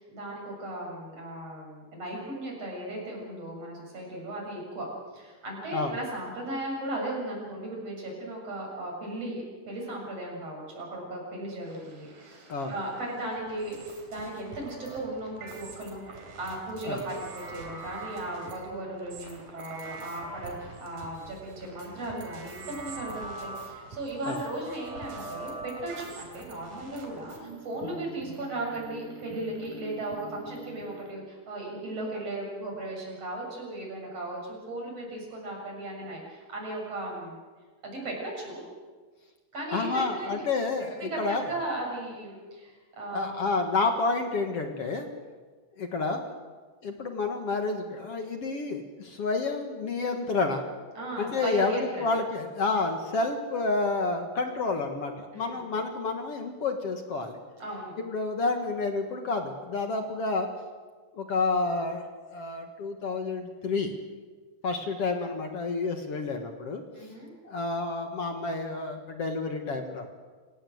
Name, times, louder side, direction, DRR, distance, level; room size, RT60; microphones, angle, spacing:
voice 1, 0.0-4.9 5.1-16.0 16.4-37.4 37.8-38.6 39.5-40.4 41.0-43.5 50.9-52.2 55.3-55.7 57.6-57.9 66.9-67.3, right 1 dB, 40° right, -1 dB, 8.3 m, -36 dB
sound 1, 11.6-31.1, right 3 dB, 60° right, 5.1 m, -44 dB
voice 2, 39.7-41.5 43.1-45.1 45.8-46.2 46.8-50.6 51.2-57.4 58.0-60.5 61.1-62.1 62.3-63.9 64.6-66.8 67.4-70.1, left 3 dB, 50° left, 5 dB, 2.1 m, -29 dB
28.0 x 17.0 x 8.0 m, 1.4 s
omnidirectional pair, 4.3 m